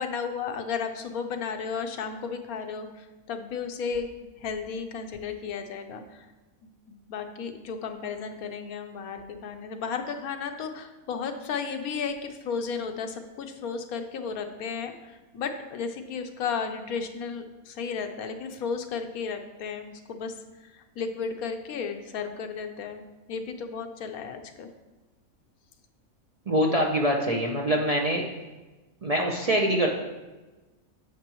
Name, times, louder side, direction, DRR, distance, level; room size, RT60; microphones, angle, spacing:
voice 1, 0.0-4.1 4.4-6.3 6.9-24.7, left 6 dB, 90° left, 6 dB, 1.2 m, -34 dB
voice 2, 26.5-28.2 29.0-29.9, right 1 dB, 40° right, -1 dB, 0.5 m, -24 dB
9.3 x 6.7 x 3.0 m, 1.2 s
omnidirectional pair, 1.5 m